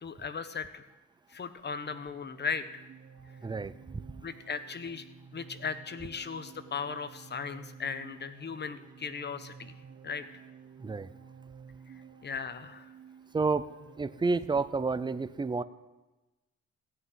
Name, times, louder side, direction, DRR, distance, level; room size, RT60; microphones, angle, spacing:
voice 1, 0.0-0.8 1.3-2.8 4.2-5.0 5.3-9.7 10.0-10.3 12.2-12.9, left 5 dB, 35° left, 11 dB, 1.1 m, -37 dB
sound 1, 1.8-14.2, right 6 dB, 55° right, 1.0 m, -53 dB
voice 2, 3.4-4.0 10.8-11.1 13.3-13.7 14.0-15.6, right 4 dB, 15° right, 14 dB, 0.5 m, -30 dB
15.5 x 6.2 x 9.4 m, 1.1 s
cardioid pair, 90°, 30 cm